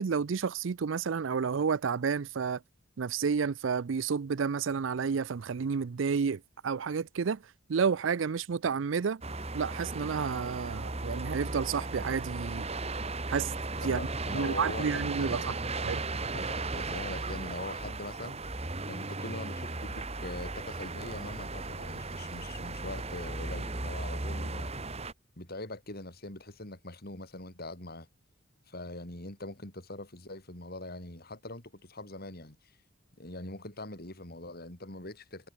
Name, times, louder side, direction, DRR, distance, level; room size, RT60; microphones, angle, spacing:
voice 1, 0.0-2.6 3.0-7.4 7.7-9.2 9.5-12.7 13.3-13.5 13.8-14.1 14.3-15.5 15.8-16.0, right 6 dB, 70° right, 0.5 m, -30 dB
sound 1, 9.2-25.1, right 2 dB, 30° right, 2.2 m, -36 dB
voice 2, 13.8-16.1 16.3-18.5 18.9-24.7 25.4-28.1 28.7-32.7 33.2-35.5, left 2 dB, 50° left, 5.0 m, -42 dB
head